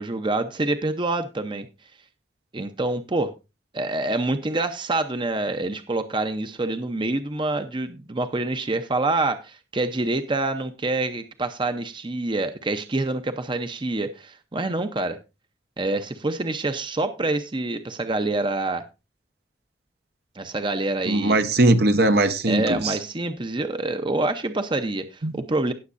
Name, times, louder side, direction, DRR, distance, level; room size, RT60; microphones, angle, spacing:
voice 1, 0.0-1.7 2.5-3.3 3.7-15.2 15.8-18.8 20.4-21.4 22.5-25.7, right 2 dB, 30° right, 0.8 m, -26 dB
voice 2, 21.1-23.0 25.2-25.4, right 2 dB, 65° right, 1.1 m, -20 dB
18.0 x 7.2 x 2.6 m
head